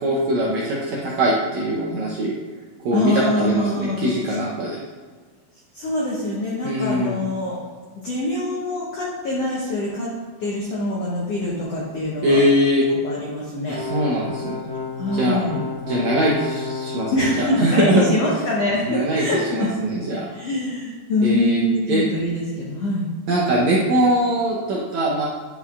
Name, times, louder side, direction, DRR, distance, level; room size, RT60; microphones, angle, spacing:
voice 1, 0.0-2.3 2.9-4.8 6.6-7.2 12.2-12.8 13.7-14.5 15.1-15.4 15.9-18.2 18.9-19.2 19.5-20.3 21.2-21.6 21.9-22.0 23.3-25.3, right 1 dB, 75° right, -5 dB, 1.7 m, -21 dB
voice 2, 2.9-4.1 5.7-7.6 8.0-10.1 10.4-12.4 13.0-13.8 14.9-15.6 17.1-19.7 20.3-23.1, left 2 dB, 90° left, -4 dB, 1.3 m, -24 dB
sound 1, 13.7-17.6, left 4 dB, 40° left, 2.5 m, -31 dB
9.7 x 6.1 x 2.4 m, 1.5 s
omnidirectional pair, 4.3 m